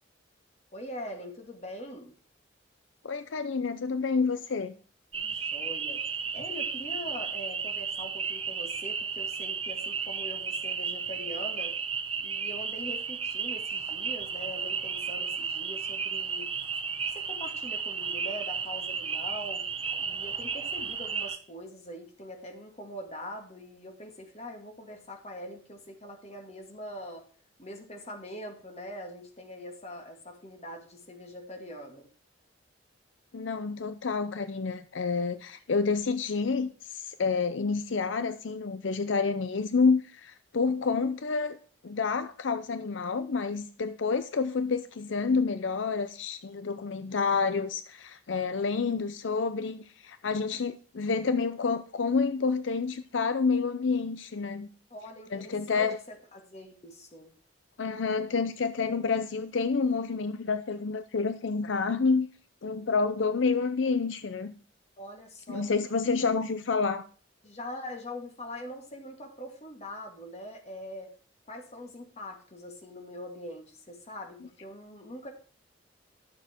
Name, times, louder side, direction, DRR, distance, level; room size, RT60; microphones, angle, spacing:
voice 1, 0.7-2.1 5.1-11.7 12.2-16.5 17.1-19.7 20.0-27.2 27.6-32.1 54.9-57.3 65.0-65.7 66.0-66.3 67.4-71.1 71.5-75.3, left 1 dB, 35° left, 3 dB, 2.1 m, -43 dB
voice 2, 3.0-4.7 33.3-41.6 41.8-54.7 55.3-56.0 57.8-62.3 62.6-64.5 65.5-67.0, left 4 dB, 75° left, 11 dB, 0.6 m, -29 dB
sound 1, 5.1-21.4, right 6 dB, 30° right, 0.9 m, -33 dB
12.0 x 6.9 x 4.4 m, 0.41 s
head